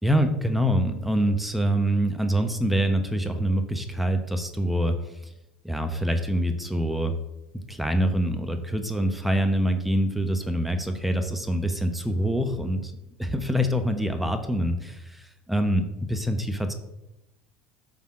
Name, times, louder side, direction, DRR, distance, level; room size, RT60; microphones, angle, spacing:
voice 1, 0.0-5.0 5.6-7.1 7.7-12.9 13.2-16.7, equal, ahead, 6 dB, 1.0 m, -25 dB
9.3 x 5.7 x 3.8 m, 0.91 s
hypercardioid pair, 75°, 5 cm